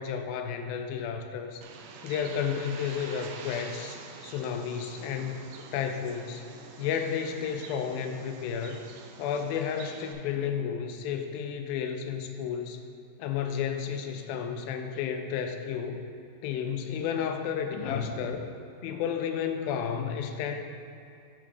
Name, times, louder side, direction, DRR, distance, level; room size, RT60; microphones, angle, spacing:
voice 1, 0.0-1.6 2.0-5.4 5.7-6.5 6.8-8.8 9.2-12.8 13.2-16.1 16.4-18.5 18.8-20.6, left 7 dB, 85° left, 5 dB, 2.3 m, -32 dB
Bird, 1.6-10.1, right 5 dB, 80° right, 1.9 m, -46 dB
10.5 x 3.8 x 5.1 m, 2.4 s
omnidirectional pair, 4.2 m